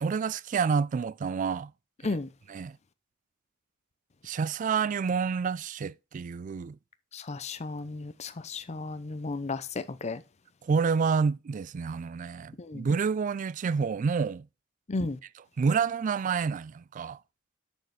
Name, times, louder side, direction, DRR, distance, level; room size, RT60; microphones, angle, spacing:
voice 1, 0.0-1.7 2.0-2.2 2.5-2.8 4.2-6.8 10.6-14.4 15.6-17.2, right 5 dB, 40° right, 0.3 m, -28 dB
voice 2, 7.1-10.2 12.6-12.9 14.9-15.2, left 3 dB, 35° left, 0.6 m, -34 dB
6.7 x 6.5 x 4.7 m
head